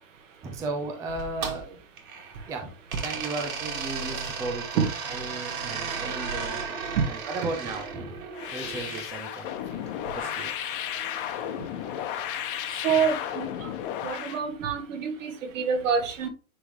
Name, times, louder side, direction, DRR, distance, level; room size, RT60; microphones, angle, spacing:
voice 1, 0.4-1.8 2.5-2.7 3.0-6.6 7.0-9.8 10.2-10.5 12.9-13.0, right 2 dB, 10° right, 0.5 m, -35 dB
sound 1, 1.1-2.5 2.9-9.1 10.1-11.3, right 5 dB, 90° right, 2.6 m, -35 dB
sound 2, 8.3-14.4, left 10 dB, 40° left, 1.2 m, -33 dB
voice 2, 12.8-13.7 14.0-16.3, right 6 dB, 65° right, 2.2 m, -26 dB
9.8 x 3.8 x 3.0 m
hypercardioid pair, 155°, 41 cm